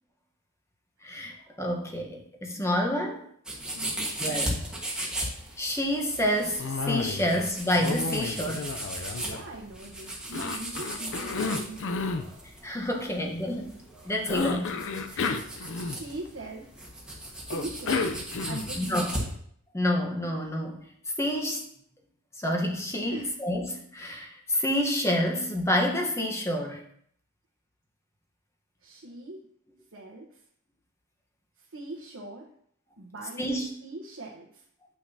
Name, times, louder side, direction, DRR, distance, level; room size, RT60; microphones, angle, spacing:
voice 1, 1.0-3.2 4.2-4.6 5.6-8.7 12.6-14.7 15.1-15.3 18.8-19.1 19.7-20.8 21.2-21.6 22.4-26.8 33.4-33.7, left 1 dB, 15° left, 1 dB, 1.0 m, -28 dB
sound 1, 3.4-19.3, right 1 dB, 5° right, 1.4 m, -37 dB
voice 2, 3.7-4.2 9.2-12.1 13.0-13.1 15.8-16.7 17.4-18.1 18.5-19.3 23.0-23.3 28.8-29.4 29.9-30.4 31.6-32.5 33.0-34.6, right 2 dB, 65° right, -3 dB, 1.0 m, -41 dB
Cough, 6.6-7.5 7.7-9.8 10.3-12.3 14.3-16.3 17.5-18.8, left 4 dB, 60° left, 0.5 m, -31 dB
8.2 x 6.1 x 2.8 m, 0.65 s
head